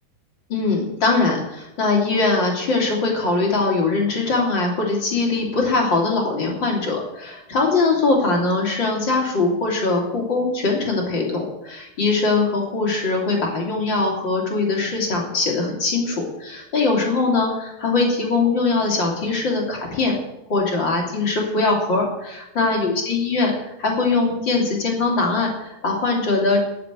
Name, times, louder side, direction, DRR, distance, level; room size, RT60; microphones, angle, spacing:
voice 1, 0.5-20.1 20.5-23.5 23.8-26.6, left 3 dB, 30° left, -1 dB, 3.3 m, -21 dB
12.5 x 7.8 x 9.1 m, 0.89 s
omnidirectional pair, 4.8 m